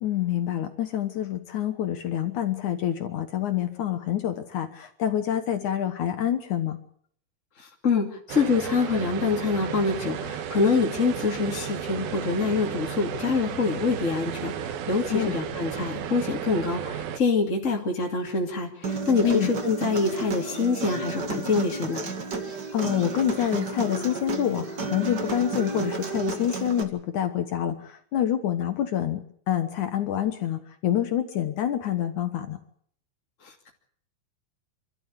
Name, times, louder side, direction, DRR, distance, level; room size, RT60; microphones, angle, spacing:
voice 1, 0.0-6.8 15.1-15.3 19.2-19.5 22.7-32.6, left 10 dB, 70° left, 8 dB, 1.9 m, -27 dB
voice 2, 7.6-22.0 33.4-33.7, left 4 dB, 25° left, 0 dB, 1.7 m, -25 dB
sound 1, 8.3-17.2, right 9 dB, 65° right, 2.7 m, -34 dB
Human voice, 18.8-26.8, right 3 dB, 45° right, 1.3 m, -32 dB
28.0 x 13.5 x 8.3 m, 0.63 s
omnidirectional pair, 5.1 m